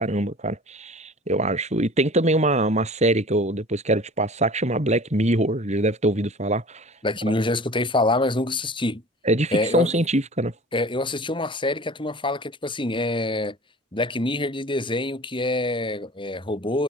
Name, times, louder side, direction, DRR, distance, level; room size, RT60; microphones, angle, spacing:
voice 1, 0.0-6.8 7.3-7.4 9.2-10.5, right 1 dB, 35° right, 4.9 m, -23 dB
voice 2, 7.0-9.0 9.5-10.0 10.7-13.6 13.9-16.8, left 2 dB, 25° left, 3.2 m, -25 dB
head